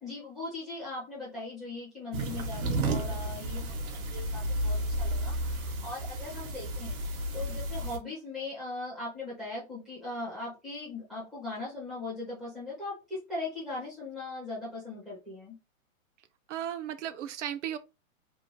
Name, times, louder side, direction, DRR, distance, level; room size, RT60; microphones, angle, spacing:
voice 1, 0.0-7.0 7.3-15.6, left 2 dB, ahead, 0.4 m, -39 dB
sound 1, 2.1-8.0, right 1 dB, 75° right, 1.1 m, -32 dB
voice 2, 16.5-17.8, right 10 dB, 60° right, 0.5 m, -35 dB
2.8 x 2.4 x 3.0 m
hypercardioid pair, 155°, 42 cm